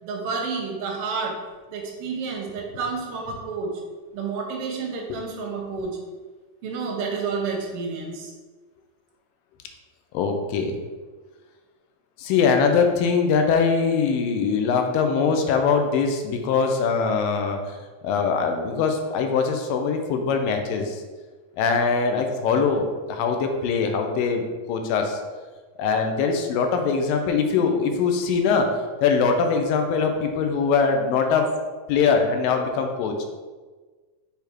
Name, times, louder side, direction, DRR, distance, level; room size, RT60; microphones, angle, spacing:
voice 1, 0.0-1.4 1.7-3.7 4.1-6.0 6.6-8.3, right 4 dB, 75° right, 0 dB, 1.4 m, -30 dB
voice 2, 10.1-10.7 12.2-17.6 18.0-21.0 21.6-24.4 24.7-25.2 25.8-28.7 29.0-31.5 31.9-33.3, left 5 dB, 90° left, 4 dB, 2.4 m, -22 dB
6.8 x 3.4 x 4.5 m, 1.4 s
omnidirectional pair, 4.0 m